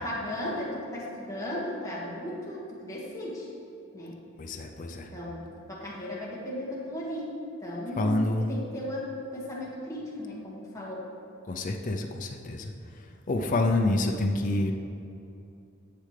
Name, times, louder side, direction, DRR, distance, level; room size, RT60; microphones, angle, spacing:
voice 1, 0.0-3.5 3.9-4.2 5.1-7.3 7.6-8.2 8.5-11.0, left 1 dB, 15° left, -6 dB, 1.8 m, -36 dB
voice 2, 4.4-5.1 8.0-8.5 11.5-14.7, left 2 dB, 40° left, 2 dB, 0.5 m, -28 dB
10.0 x 7.5 x 3.3 m, 2.7 s
head